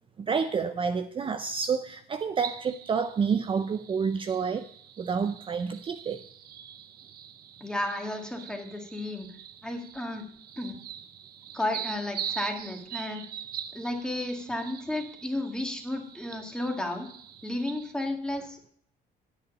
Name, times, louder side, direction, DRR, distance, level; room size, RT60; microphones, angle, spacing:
voice 1, 0.2-4.6 5.0-6.2, right 6 dB, 30° right, 9 dB, 0.5 m, -29 dB
sound 1, 2.4-17.9, right 9 dB, 65° right, 1.0 m, -43 dB
voice 2, 7.6-10.3 10.5-10.8 11.5-13.2 13.7-17.1 17.4-18.7, left 1 dB, 5° left, 2 dB, 1.8 m, -33 dB
9.6 x 8.0 x 5.3 m, 0.63 s
cardioid pair, 110°, 17 cm